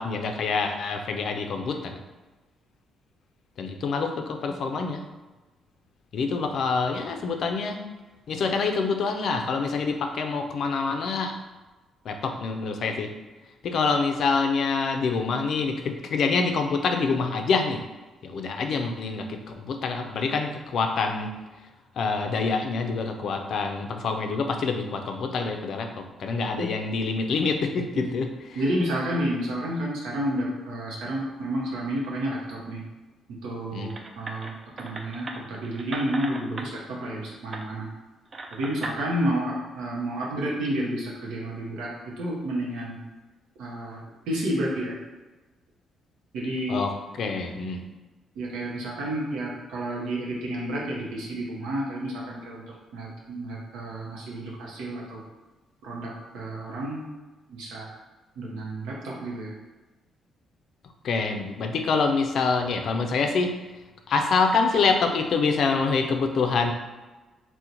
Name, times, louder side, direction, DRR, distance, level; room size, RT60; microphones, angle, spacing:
voice 1, 0.0-2.0 3.6-5.0 6.1-7.8 8.3-11.3 12.1-13.1 13.6-17.8 18.2-21.3 22.0-28.6 33.7-33.9 46.7-46.9 47.2-47.8 61.0-63.5 64.1-66.7, left 4 dB, 65° left, 5 dB, 0.4 m, -26 dB
voice 2, 28.5-32.8 33.3-37.9 38.5-43.0 43.6-44.0 44.3-44.9 46.3-46.8 48.4-55.2 55.8-57.0 57.5-57.9 58.4-59.6, right 1 dB, 90° right, -4 dB, 0.7 m, -30 dB
sound 1, 33.9-36.7 37.5-37.7 38.3-39.0, right 2 dB, 40° right, 0.3 m, -37 dB
2.9 x 2.1 x 3.8 m, 1.2 s
cardioid pair, 90°, 0 cm